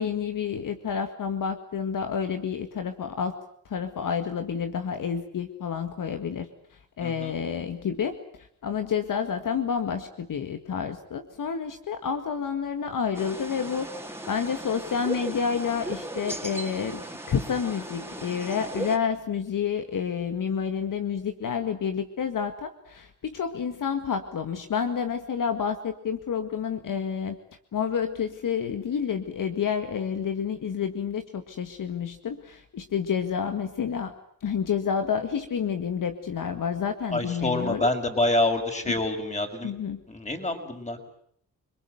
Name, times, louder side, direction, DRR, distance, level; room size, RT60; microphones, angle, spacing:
voice 1, 0.0-3.3 3.7-13.9 14.3-27.4 27.7-34.1 34.4-37.9 39.6-40.0, left 7 dB, 65° left, 7 dB, 2.0 m, -29 dB
voice 2, 7.0-7.3 37.1-39.7 40.1-41.0, left 2 dB, 20° left, 5 dB, 6.1 m, -27 dB
sound 1, 13.1-19.0, right 1 dB, 5° right, 3.8 m, -37 dB
29.0 x 21.0 x 8.1 m, 0.66 s
cardioid pair, 60°, 35 cm